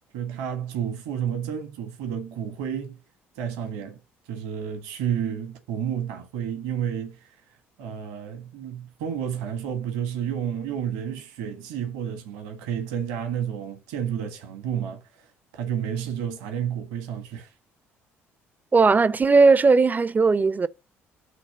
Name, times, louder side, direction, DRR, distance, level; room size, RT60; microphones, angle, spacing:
voice 1, 0.1-3.0 3.3-4.0 4.3-7.3 7.8-17.5, right 9 dB, 70° right, 1.5 m, -31 dB
voice 2, 18.7-20.7, right 4 dB, 25° right, 0.6 m, -17 dB
9.5 x 3.2 x 6.6 m
figure-of-eight pair, 50°, 7 cm